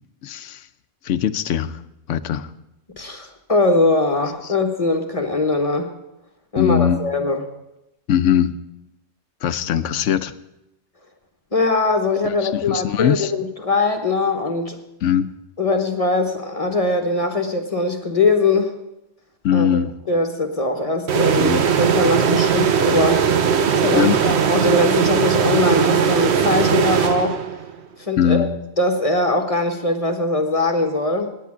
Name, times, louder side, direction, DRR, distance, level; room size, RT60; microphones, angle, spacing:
voice 1, 0.2-0.7 1.0-1.8 2.1-2.5 4.4-4.5 6.6-7.0 8.1-8.5 9.4-10.3 12.2-13.3 15.0-15.3 19.4-20.0 21.4-21.8 23.9-24.2 28.2-28.5, left 9 dB, 80° left, 13 dB, 1.0 m, -21 dB
voice 2, 3.0-5.9 6.5-7.4 11.5-14.8 15.6-18.8 19.5-19.8 20.1-27.4 28.0-28.5 28.8-31.4, left 2 dB, 30° left, 5 dB, 1.1 m, -21 dB
sound 1, 21.1-27.7, right 7 dB, 60° right, 1.0 m, -19 dB
9.7 x 8.3 x 9.6 m, 0.92 s
omnidirectional pair, 1.3 m